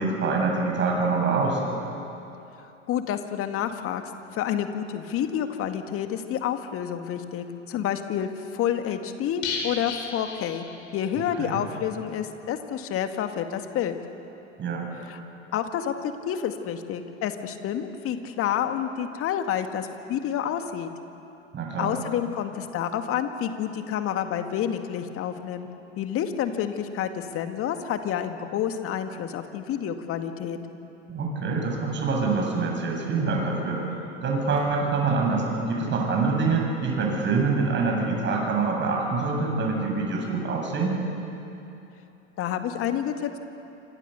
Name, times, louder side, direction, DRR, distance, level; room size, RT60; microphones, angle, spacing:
voice 1, 0.0-1.6 11.4-11.6 14.6-14.9 21.5-21.9 31.1-33.8 34.2-41.0, right 4 dB, 30° right, 0 dB, 7.8 m, -25 dB
voice 2, 2.9-4.0 4.3-10.7 10.9-13.9 15.1-15.2 15.5-20.9 21.8-25.7 26.0-30.6 42.4-43.4, left 9 dB, 40° left, 7 dB, 2.1 m, -29 dB
sound 1, 9.4-11.2 11.5-11.6 11.9-12.0, left 5 dB, 60° left, 5.2 m, -34 dB
28.0 x 26.0 x 7.0 m, 2.9 s
figure-of-eight pair, 85°, 36 cm